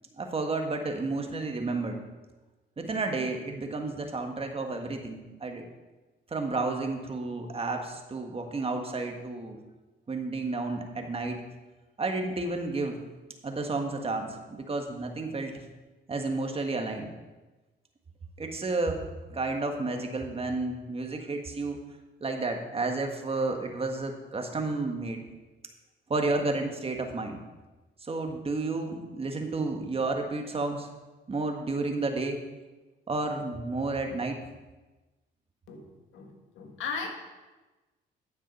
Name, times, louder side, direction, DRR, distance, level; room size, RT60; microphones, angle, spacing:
voice 1, 0.2-2.0 2.8-5.7 6.3-9.6 10.1-11.4 12.0-13.0 13.4-15.5 16.1-17.1 18.4-19.0 19.3-21.8 22.2-25.2 26.1-27.4 28.1-30.9 31.3-32.4 33.1-34.4, right 3 dB, 30° right, 3 dB, 1.6 m, -31 dB
voice 2, 35.7-37.1, left 5 dB, 90° left, 3 dB, 1.7 m, -37 dB
9.7 x 7.4 x 5.5 m, 1.2 s
cardioid pair, 90°, 20 cm